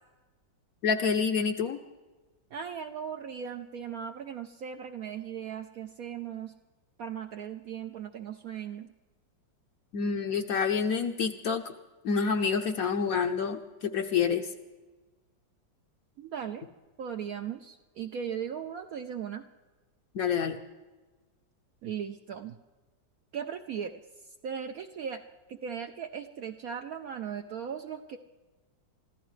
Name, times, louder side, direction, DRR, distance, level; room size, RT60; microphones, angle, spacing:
voice 1, 0.8-1.8 9.9-11.6 12.0-14.5 20.1-20.6, left 6 dB, 60° left, 6 dB, 1.0 m, -28 dB
voice 2, 2.5-6.5 7.0-8.9 16.2-16.7 17.0-19.4 21.8-22.6 23.3-23.9 24.4-25.2 25.5-28.2, right 8 dB, 70° right, 6 dB, 0.9 m, -38 dB
25.0 x 14.5 x 3.2 m, 1.2 s
omnidirectional pair, 2.0 m